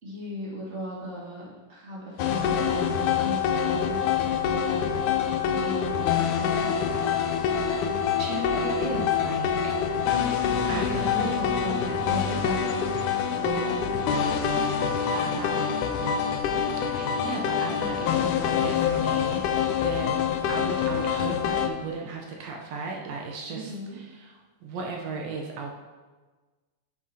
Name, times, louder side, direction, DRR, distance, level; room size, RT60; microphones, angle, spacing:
voice 1, 0.0-3.4 3.6-4.8 5.6-6.7 10.6-12.6 13.3-14.5 15.1-16.2 23.5-24.0, right 1 dB, 30° right, -6 dB, 1.6 m, -37 dB
sound 1, 2.2-21.7, left 7 dB, 80° left, 1.9 m, -26 dB
voice 2, 7.4-9.8 10.7-11.3 16.8-19.5 19.8-20.2 20.5-25.7, right 3 dB, 75° right, 0 dB, 1.6 m, -36 dB
9.4 x 5.3 x 2.8 m, 1.3 s
omnidirectional pair, 3.6 m